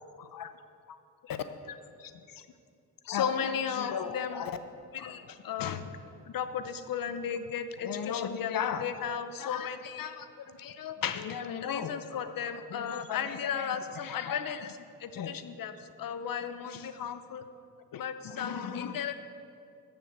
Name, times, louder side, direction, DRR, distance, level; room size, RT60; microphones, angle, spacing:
voice 1, 0.2-0.5 1.2-2.5 3.0-4.6 4.9-17.4 17.9-19.1, left 7 dB, 65° left, 10 dB, 0.7 m, -34 dB
8.2 x 7.1 x 7.8 m, 2.5 s
cardioid pair, 65°, 37 cm